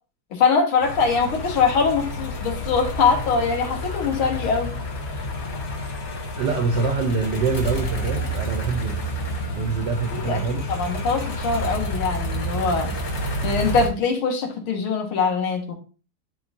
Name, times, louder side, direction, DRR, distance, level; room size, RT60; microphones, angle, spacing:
voice 1, 0.3-4.8 10.1-10.4 10.7-12.9 13.4-15.7, left 5 dB, 90° left, 3 dB, 2.1 m, -22 dB
sound 1, 0.8-13.9, equal, 40° left, 1.1 m, -29 dB
voice 2, 6.4-9.0 9.6-10.7, right 5 dB, 70° right, 5 dB, 1.2 m, -25 dB
10.5 x 3.7 x 2.6 m, 0.36 s
omnidirectional pair, 2.2 m